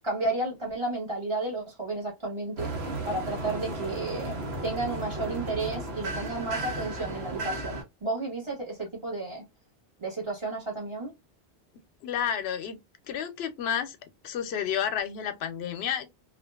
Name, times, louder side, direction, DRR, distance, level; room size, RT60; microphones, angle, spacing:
voice 1, 0.0-2.7 3.0-9.4 10.0-11.1, right 2 dB, 30° right, 1.3 m, -32 dB
sound 1, 2.6-7.8, right 2 dB, 85° right, 1.0 m, -34 dB
voice 2, 12.0-12.8 13.1-14.0 14.2-16.1, left 9 dB, 90° left, 0.8 m, -30 dB
2.5 x 2.3 x 2.2 m
omnidirectional pair, 1.0 m